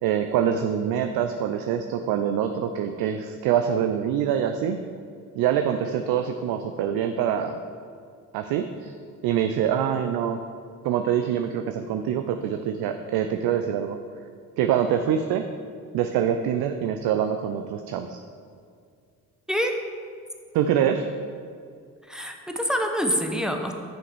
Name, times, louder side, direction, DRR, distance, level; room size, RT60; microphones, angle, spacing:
voice 1, 0.0-4.8 5.3-7.6 8.3-8.9 9.2-10.4 10.8-14.0 14.6-15.5 15.9-18.2 20.5-21.1, right 9 dB, 55° right, 7 dB, 0.6 m, -25 dB
voice 2, 19.5-19.8 22.1-23.7, equal, ahead, 4 dB, 0.9 m, -26 dB
7.0 x 6.5 x 4.7 m, 2.3 s
hypercardioid pair, 50°, 44 cm